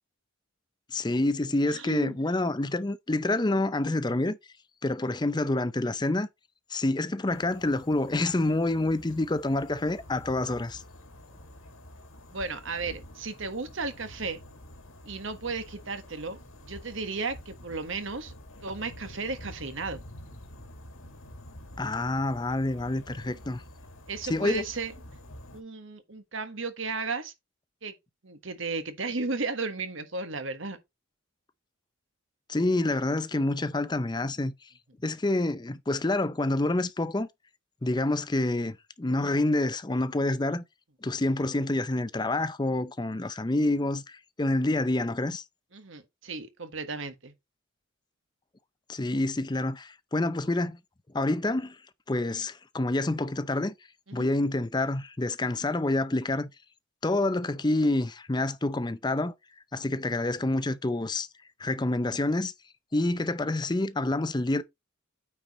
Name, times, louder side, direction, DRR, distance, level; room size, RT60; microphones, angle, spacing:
voice 1, 0.9-4.4 4.8-6.3 6.7-10.8 21.8-23.6 24.2-24.6 32.5-34.5 35.0-37.3 37.8-40.6 41.0-45.4 48.9-50.8 51.1-51.8 52.1-53.7 54.1-56.5 57.0-59.3 59.7-61.3 61.6-62.5 62.9-64.6, left 2 dB, 20° left, 0.5 m, -27 dB
voice 2, 1.7-2.1 12.3-14.4 15.0-18.3 18.6-20.0 24.1-24.9 25.5-27.3 27.8-27.9 28.2-30.8 45.7-47.3 54.1-54.3, right 4 dB, 60° right, 1.4 m, -34 dB
sound 1, 7.3-25.6, left 1 dB, 75° left, 1.9 m, -48 dB
9.0 x 4.7 x 4.2 m
head